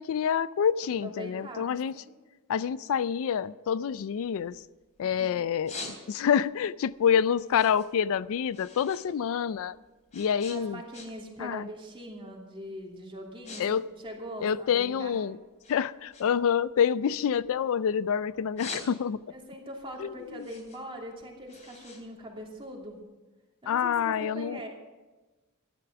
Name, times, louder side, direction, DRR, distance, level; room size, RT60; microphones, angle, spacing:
voice 1, 0.0-1.9 2.5-4.5 5.0-5.7 6.1-9.7 10.1-10.8 11.4-11.7 13.6-13.8 14.4-15.4 15.7-19.2 20.0-20.1 23.7-24.6, left 7 dB, 65° left, 17 dB, 0.3 m, -27 dB
voice 2, 1.0-2.1 5.0-5.3 10.5-15.2 18.3-18.5 19.3-23.0 23.6-24.7, equal, 25° right, -1 dB, 2.8 m, -42 dB
sound 1, 3.9-5.0 5.4-6.5 6.9-9.1 9.4-11.4 11.7-12.0 12.6-12.8 13.1-13.6 13.9-15.1 15.6-17.9 18.3-19.4 19.8-22.9, left 3 dB, 35° left, 3.3 m, -45 dB
13.5 x 11.5 x 5.9 m, 1.2 s
head